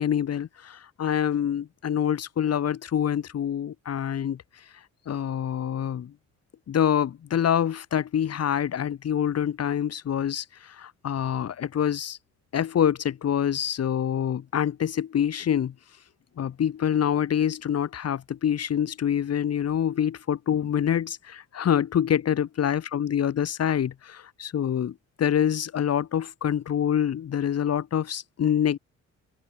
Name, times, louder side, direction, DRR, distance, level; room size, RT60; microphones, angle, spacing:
voice 1, 0.0-4.4 5.1-6.1 6.7-12.2 12.5-15.7 16.4-28.8, left 9 dB, 55° left, 2.1 m, -26 dB
open air
cardioid pair, 90°, 30 cm